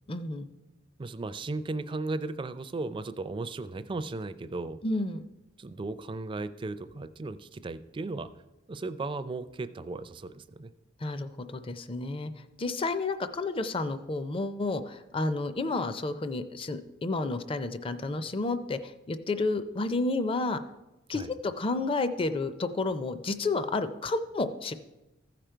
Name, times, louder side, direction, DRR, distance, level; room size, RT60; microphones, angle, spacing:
voice 1, 0.1-0.5 4.8-5.2 11.0-12.3 12.6-20.6 21.1-24.7, left 3 dB, 30° left, 11 dB, 0.5 m, -31 dB
voice 2, 1.0-4.8 5.6-8.3 8.7-10.7 21.1-21.3, right 3 dB, 25° right, 12 dB, 0.4 m, -36 dB
14.5 x 5.1 x 4.5 m, 1.0 s
head